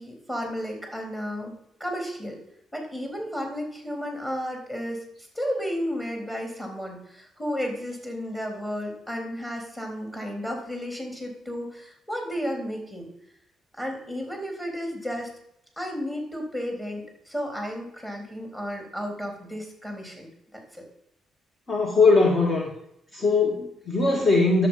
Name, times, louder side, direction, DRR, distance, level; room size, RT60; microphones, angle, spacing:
voice 1, 0.0-2.4 2.7-5.0 5.3-13.1 13.8-15.3 15.8-20.9, equal, 15° left, 2 dB, 3.8 m, -33 dB
voice 2, 21.7-22.7 23.1-24.7, left 3 dB, 35° left, 2 dB, 1.6 m, -20 dB
10.5 x 7.8 x 5.7 m, 0.76 s
cardioid pair, 90°, 0 cm